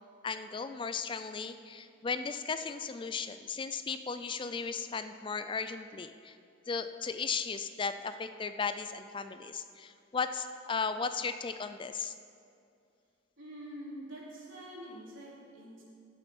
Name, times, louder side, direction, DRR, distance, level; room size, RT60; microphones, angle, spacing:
voice 1, 0.2-6.3 6.7-12.1, left 5 dB, 25° left, 10 dB, 0.4 m, -36 dB
voice 2, 13.4-15.8, equal, 85° right, -4 dB, 3.2 m, -46 dB
16.0 x 7.0 x 5.4 m, 2.4 s
head